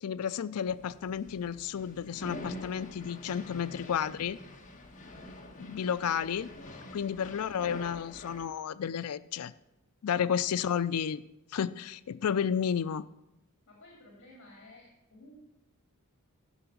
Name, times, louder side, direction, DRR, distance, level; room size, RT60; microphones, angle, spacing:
voice 1, 0.0-4.4 5.6-6.5 6.9-9.5 10.0-11.2 11.5-13.1, left 8 dB, 80° left, 16 dB, 0.4 m, -32 dB
sound 1, 0.7-8.5, left 1 dB, 35° left, 1.5 m, -46 dB
voice 2, 13.7-15.4, left 1 dB, 60° left, -2 dB, 2.8 m, -54 dB
15.0 x 5.9 x 7.0 m, 0.92 s
head